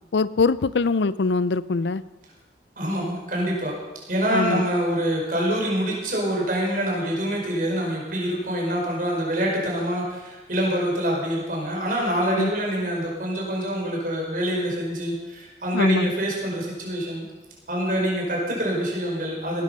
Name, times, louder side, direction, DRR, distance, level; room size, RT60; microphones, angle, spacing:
voice 1, 0.1-2.0 4.3-4.7 12.4-12.5 15.7-16.1, left 4 dB, 80° left, 17 dB, 0.5 m, -23 dB
voice 2, 2.8-3.7 4.1-17.3 17.7-19.6, equal, 50° right, -2 dB, 5.3 m, -25 dB
18.5 x 12.5 x 5.6 m, 1.2 s
head